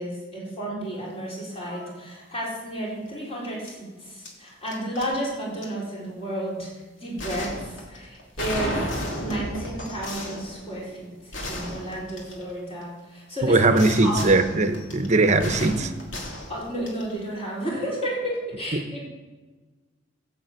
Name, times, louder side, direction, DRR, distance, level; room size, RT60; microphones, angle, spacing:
voice 1, 0.0-6.7 7.0-11.1 11.5-13.6 14.0-14.2 16.5-19.0, right 1 dB, 30° left, -5 dB, 4.6 m, -32 dB
sound 1, 1.0-1.2 1.5-1.9 3.6-3.7 4.2-5.1 5.6-5.7 7.2-12.8 13.7-17.2, left 1 dB, 85° left, 2.7 m, -34 dB
voice 2, 13.4-15.9 18.7-18.8, right 2 dB, 40° right, 8 dB, 0.9 m, -20 dB
12.0 x 7.8 x 8.0 m, 1.3 s
head